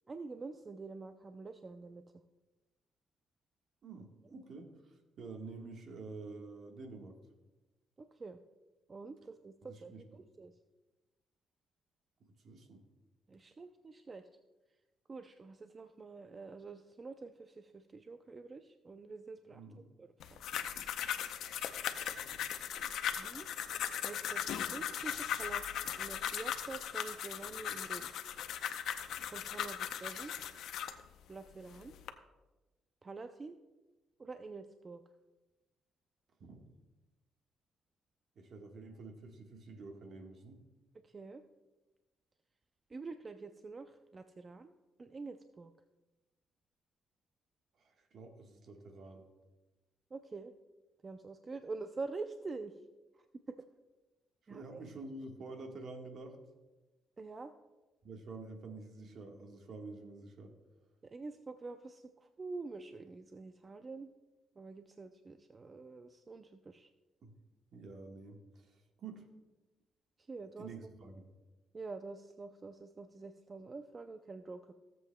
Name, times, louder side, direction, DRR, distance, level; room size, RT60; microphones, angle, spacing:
voice 1, 0.1-2.0 8.0-8.4 8.9-10.5 13.3-14.3 15.1-19.6 20.0-20.1 23.2-23.6 24.0-25.7 26.0-28.1 29.3-30.3 31.3-31.9 33.0-33.6 34.2-35.0 41.0-41.4 42.9-44.7 45.0-45.7 50.1-50.5 51.0-52.8 53.1-53.7 54.5-54.8 57.2-57.5 61.0-64.1 64.6-66.9 70.3-70.7 71.7-74.7, right 3 dB, 35° right, 8 dB, 0.5 m, -46 dB
voice 2, 3.8-7.2 9.7-10.2 12.4-12.8 19.5-19.8 22.3-22.4 36.4-36.7 38.3-40.6 47.8-49.2 54.5-56.4 58.0-60.6 67.2-67.3 67.7-69.2 70.6-71.3, right 3 dB, 60° right, 3 dB, 1.4 m, -49 dB
sound 1, 20.2-31.0 31.6-32.1, left 9 dB, 80° left, 0.6 m, -38 dB
16.5 x 7.7 x 2.2 m, 1.1 s
cardioid pair, 90°, 0 cm